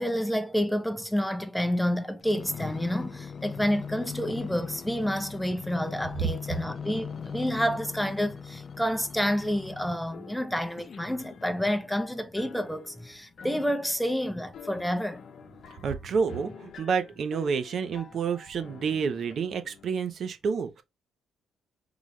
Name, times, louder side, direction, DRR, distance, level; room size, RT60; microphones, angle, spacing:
voice 1, 0.0-15.2, equal, ahead, 0.7 m, -29 dB
sound 1, 2.2-10.2 10.8-12.1 12.7-12.8, left 6 dB, 40° left, 0.4 m, -40 dB
sound 2, 8.9-19.9, left 6 dB, 60° left, 0.8 m, -49 dB
voice 2, 15.8-20.8, right 6 dB, 55° right, 0.7 m, -29 dB
3.9 x 3.1 x 3.2 m
cardioid pair, 115°, 0 cm